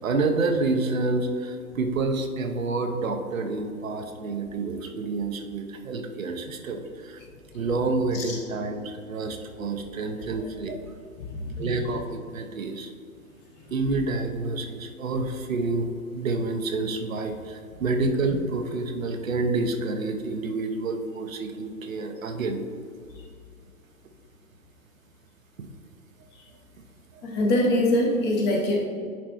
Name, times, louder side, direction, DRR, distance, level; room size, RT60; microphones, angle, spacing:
voice 1, 0.0-7.2 7.5-10.8 11.6-12.9 13.7-15.9 16.1-22.6 25.6-25.7 27.1-27.2, right 3 dB, 70° right, 5 dB, 0.8 m, -28 dB
voice 2, 11.2-11.7 27.2-28.9, left 1 dB, 25° left, 0 dB, 1.0 m, -24 dB
10.5 x 4.2 x 3.0 m, 2.2 s
figure-of-eight pair, 110°, 43 cm